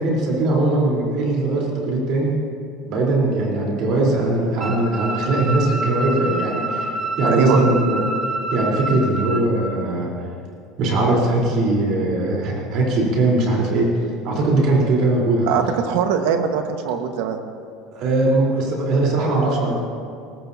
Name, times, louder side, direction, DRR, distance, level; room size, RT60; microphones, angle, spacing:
voice 1, 0.0-2.3 2.8-6.8 7.2-8.0 8.5-10.1 10.8-13.9 14.2-15.5 17.9-19.7, right 2 dB, 45° right, -3 dB, 4.1 m, -20 dB
sound 1, 4.6-9.4, right 2 dB, 10° right, 1.3 m, -27 dB
voice 2, 7.2-7.6 15.5-17.4, right 7 dB, 65° right, 5 dB, 1.5 m, -21 dB
22.5 x 19.0 x 2.9 m, 2.4 s
cardioid pair, 175°, 0 cm